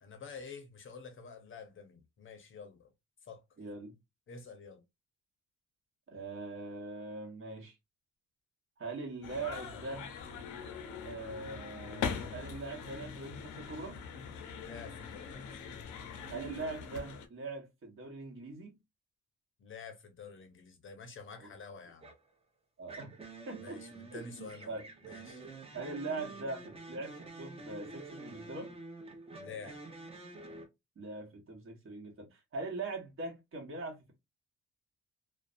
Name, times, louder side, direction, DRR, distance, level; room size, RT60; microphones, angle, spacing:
voice 1, 0.0-2.9 3.2-3.4 4.3-4.8 14.6-15.8 19.6-22.1 23.6-24.8 25.0-25.4 29.4-29.8, left 5 dB, 40° left, 0.7 m, -49 dB
voice 2, 3.6-4.0 6.1-7.8 8.8-10.1 11.0-14.0 16.3-18.8 21.4-21.5 22.8-23.2 23.5-23.8 24.1-24.9 25.7-28.7 31.0-34.1, right 3 dB, 45° right, 1.1 m, -42 dB
sound 1, 9.2-17.3, left 6 dB, 85° left, 0.6 m, -42 dB
sound 2, 22.0-22.3 22.9-30.7, right 3 dB, 20° right, 0.8 m, -48 dB
2.5 x 2.2 x 2.4 m
cardioid pair, 90°, 30 cm